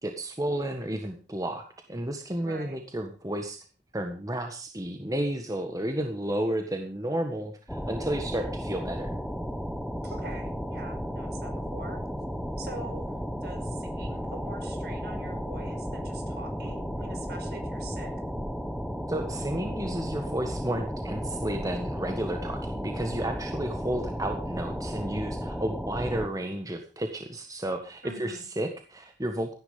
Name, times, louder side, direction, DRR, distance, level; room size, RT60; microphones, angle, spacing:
voice 1, 0.0-3.6 3.9-9.2 19.1-29.5, right 1 dB, 20° right, 5 dB, 1.6 m, -32 dB
voice 2, 2.4-2.8 10.0-12.0 12.6-13.1 13.4-18.1 28.0-28.4, right 2 dB, 60° right, 5 dB, 5.3 m, -44 dB
sound 1, 7.7-26.3, equal, ahead, 1.2 m, -34 dB
16.0 x 10.0 x 5.4 m, 0.36 s
head